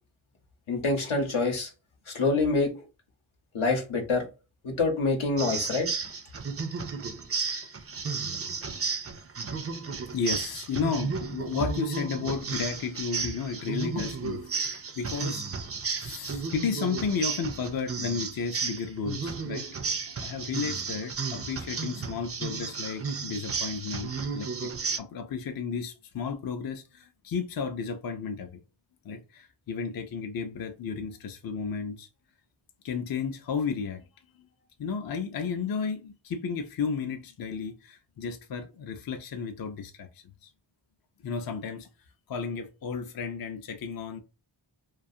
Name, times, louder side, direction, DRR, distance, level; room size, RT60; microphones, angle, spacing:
voice 1, 0.7-1.7 2.1-2.7 3.5-4.2 4.6-5.9, left 3 dB, 80° left, 0.9 m, -26 dB
sound 1, 5.4-25.0, right 5 dB, 35° right, 0.4 m, -33 dB
voice 2, 10.1-15.5 16.0-19.7 20.2-28.6 29.0-32.1 32.8-34.1 34.8-40.1 40.4-40.5 41.2-41.9 42.3-44.2, left 5 dB, 50° left, 0.4 m, -33 dB
2.4 x 2.3 x 2.6 m
wide cardioid pair, 45°, 48 cm